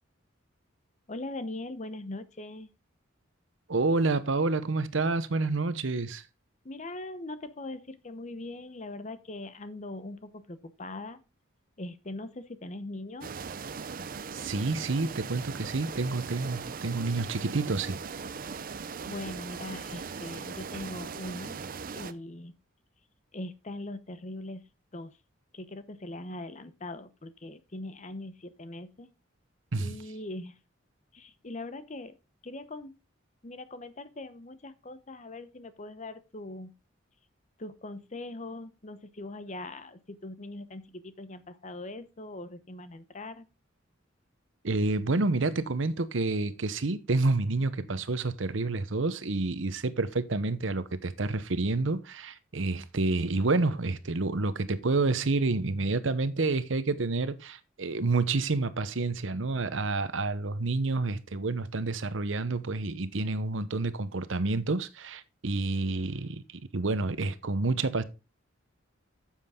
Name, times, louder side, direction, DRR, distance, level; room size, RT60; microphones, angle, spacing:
voice 1, 1.1-2.7 6.6-11.2 11.8-13.3 19.0-21.6 21.9-22.5 23.3-24.6 24.9-25.2 25.5-29.1 29.8-30.6 31.1-32.2 32.4-33.0 33.4-36.7 37.6-43.5, left 2 dB, 35° left, 0.8 m, -41 dB
voice 2, 3.7-6.2 14.3-18.0 29.7-30.0 44.6-68.0, right 3 dB, 70° right, 0.8 m, -29 dB
sound 1, 13.2-22.1, right 5 dB, 45° right, 0.6 m, -39 dB
9.8 x 7.4 x 3.6 m
head